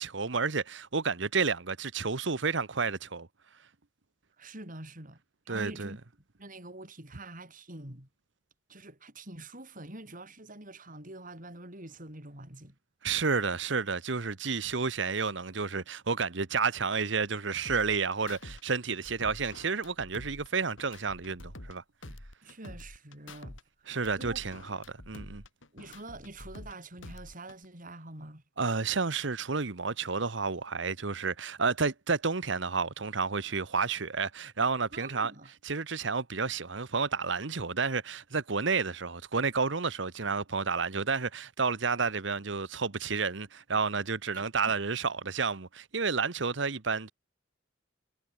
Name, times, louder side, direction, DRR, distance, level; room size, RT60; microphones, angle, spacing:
voice 1, 0.0-3.3 5.5-5.9 13.0-21.8 23.9-25.4 28.6-35.3 35.6-47.1, right 4 dB, 65° right, 1.2 m, -31 dB
voice 2, 4.4-5.2 5.4-6.0 6.4-8.1 8.7-12.7 22.0-23.9 24.2-24.4 25.7-28.4 34.9-35.5 44.3-44.8, right 2 dB, 45° right, 6.9 m, -46 dB
sound 1, 17.6-18.6 18.9-21.8 22.0-23.6 23.9-26.7 27.0-27.6, left 1 dB, 75° left, 4.0 m, -47 dB
head